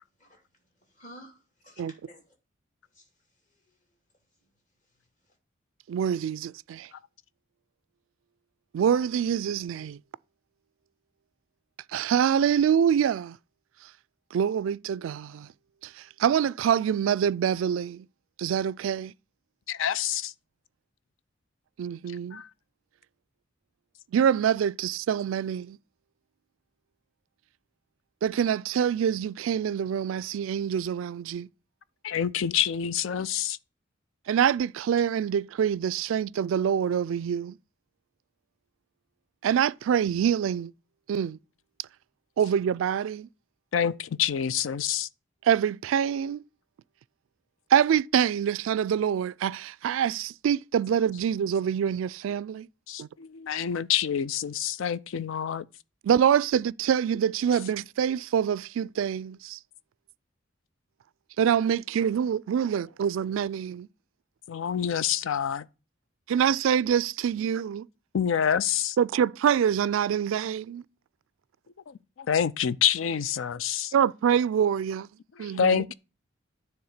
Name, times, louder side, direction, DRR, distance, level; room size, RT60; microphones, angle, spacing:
voice 1, 0.8-2.3 2.9-3.1 3.5-3.8, equal, 40° left, 2.6 m, -52 dB
voice 2, 5.9-6.9 8.7-10.0 11.9-13.4 14.3-15.5 15.8-18.1 18.4-19.1 21.8-22.4 24.1-25.8 28.2-31.5 34.3-37.5 39.4-40.7 41.1-41.4 42.4-43.3 45.4-46.4 47.7-52.7 53.0-53.1 56.0-59.6 61.4-63.9 66.3-67.9 69.0-70.8 73.9-75.1 75.4-75.8, right 8 dB, 80° right, 0.3 m, -25 dB
voice 3, 19.7-20.3 22.3-22.5 32.0-33.6 43.7-45.1 52.9-55.7 64.5-65.7 68.1-69.0 71.9-73.9 75.4-75.9, left 8 dB, 75° left, 0.4 m, -27 dB
9.6 x 3.5 x 6.5 m
head